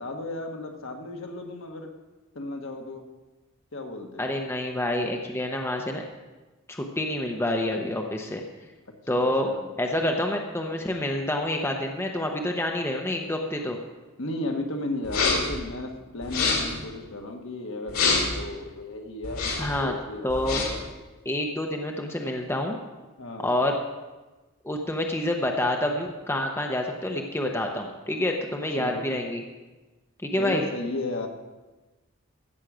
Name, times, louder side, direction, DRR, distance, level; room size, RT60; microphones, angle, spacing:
voice 1, 0.0-1.9 2.3-3.1 3.7-4.4 9.1-9.7 14.2-20.8 23.2-23.5 28.7-29.0 30.4-31.3, left 2 dB, 60° left, 3 dB, 1.5 m, -34 dB
voice 2, 4.2-6.0 6.7-8.4 9.1-9.5 9.8-13.8 19.6-19.9 20.2-20.6 21.3-22.8 23.4-23.8 24.6-29.4 30.2-30.6, left 1 dB, 10° left, 2 dB, 0.8 m, -27 dB
sound 1, 15.0-15.6 16.2-16.8 17.9-18.4 19.2-19.8 20.3-20.8, left 4 dB, 80° left, 2.6 m, -26 dB
15.5 x 6.4 x 6.2 m, 1.2 s
head